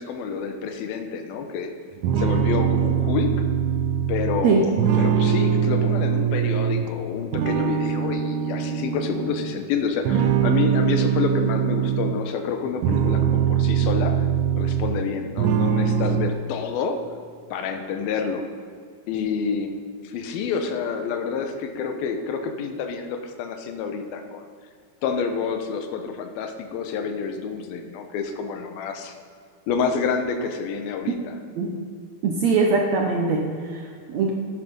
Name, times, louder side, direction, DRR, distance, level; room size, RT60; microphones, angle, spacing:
voice 1, 0.0-1.7 2.2-3.3 4.1-14.2 14.6-17.0 17.5-18.4 19.1-19.7 20.0-24.4 25.0-29.1 29.7-31.3, left 6 dB, 80° left, 6 dB, 2.8 m, -28 dB
sound 1, 2.0-6.9 7.3-9.6 10.1-12.2 12.6-15.1 15.4-16.3, right 8 dB, 90° right, 1.7 m, -22 dB
voice 2, 32.2-34.3, right 4 dB, 70° right, 1 dB, 1.7 m, -22 dB
11.5 x 9.7 x 5.4 m, 2.2 s
omnidirectional pair, 4.3 m